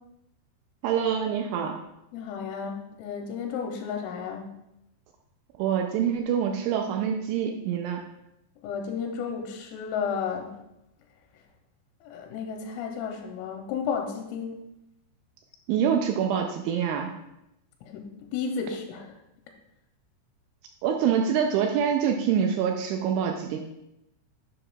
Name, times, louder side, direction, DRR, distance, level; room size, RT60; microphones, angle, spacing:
voice 1, 0.8-1.8 5.6-8.0 15.7-17.1 20.8-23.6, right 8 dB, 85° right, 3 dB, 2.7 m, -25 dB
voice 2, 2.1-4.5 8.6-10.5 12.0-14.7 17.8-19.2, left 6 dB, 85° left, 2 dB, 3.3 m, -33 dB
11.0 x 6.9 x 2.3 m, 0.85 s
omnidirectional pair, 5.9 m